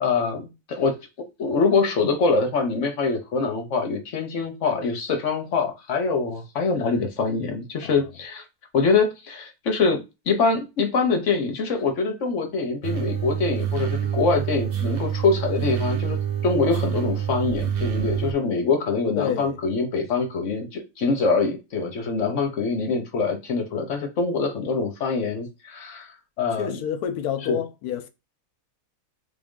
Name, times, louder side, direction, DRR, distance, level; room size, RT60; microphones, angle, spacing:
voice 1, 0.0-8.4 8.7-26.8 27.4-27.6, left 4 dB, 60° left, 1.0 m, -24 dB
sound 1, 12.8-18.3, right 9 dB, 55° right, 0.7 m, -27 dB
voice 2, 19.2-19.6 26.6-28.1, left 9 dB, 90° left, 1.1 m, -28 dB
3.7 x 2.5 x 3.6 m
omnidirectional pair, 1.6 m